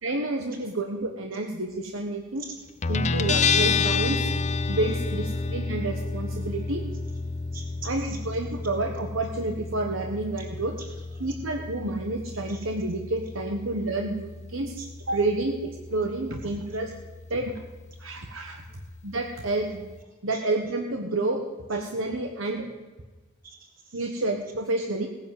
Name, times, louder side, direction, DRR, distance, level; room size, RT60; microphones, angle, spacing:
voice 1, 0.0-2.4 2.9-4.2 4.7-6.8 7.8-10.7 11.2-14.7 15.1-16.9 17.3-17.5 18.0-18.6 19.0-19.8 20.2-21.4 21.7-22.6 23.9-25.1, right 2 dB, 70° right, 3 dB, 1.3 m, -29 dB
Guitar, 2.8-20.0, left 4 dB, 35° left, 0.6 m, -31 dB
voice 2, 7.5-8.2 10.8-11.3 12.5-12.7 14.8-14.9 20.3-20.4 23.4-24.2, right 4 dB, 45° right, -1 dB, 4.0 m, -45 dB
18.0 x 10.0 x 7.8 m, 1.3 s
head